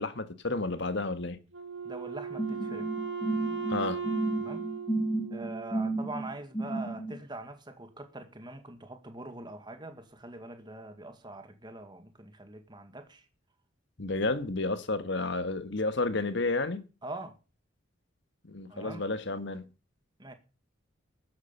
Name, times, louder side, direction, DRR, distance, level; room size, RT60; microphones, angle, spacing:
voice 1, 0.0-1.4 3.7-4.0 14.0-16.8 18.4-19.7, left 3 dB, 60° left, 1.6 m, -31 dB
Wind instrument woodwind instrument, 1.5-6.0, right 6 dB, 65° right, 2.5 m, -37 dB
voice 2, 1.8-2.9 4.4-4.7 5.3-13.3 17.0-17.4 18.7-19.0 20.2-20.3, right 2 dB, 20° right, 1.9 m, -43 dB
sound 1, 2.4-7.2, right 2 dB, 20° left, 1.6 m, -32 dB
13.0 x 9.9 x 6.9 m
head